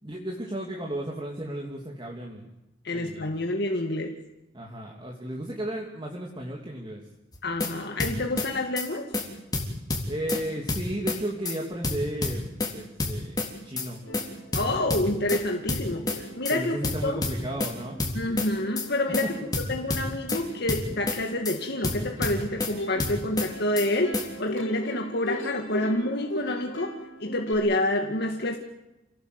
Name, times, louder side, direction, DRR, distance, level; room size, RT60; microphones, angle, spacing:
voice 1, 0.0-2.4 2.9-3.3 4.5-7.0 10.1-14.0 16.5-18.0 19.1-19.4, right 1 dB, 25° right, -1 dB, 2.7 m, -34 dB
voice 2, 2.8-4.1 7.4-9.1 14.5-17.2 18.1-19.3 19.7-24.1 24.4-26.9 27.2-28.6, left 1 dB, 55° left, 2 dB, 2.0 m, -28 dB
sound 1, 7.3-7.7 8.0-8.5 8.8-8.9 9.1-9.3 9.5-10.4 10.7-11.2 11.4-11.6 11.8-12.7 13.0-13.5 13.8-13.9 14.1-14.3 14.5-15.4 15.7-16.2 16.4-16.6 16.8-17.7 18.0-18.5 18.8-18.9 19.1-19.3 19.5-20.4 20.7-21.2 21.4-21.6 21.8-22.7 23.0-23.5 23.8-23.9 24.1-24.3, left 2 dB, 20° left, 3.8 m, -28 dB
Plucked string instrument, 13.7-13.8 14.0-27.5, equal, 85° left, 4.3 m, -40 dB
28.5 x 18.0 x 8.1 m, 0.98 s
head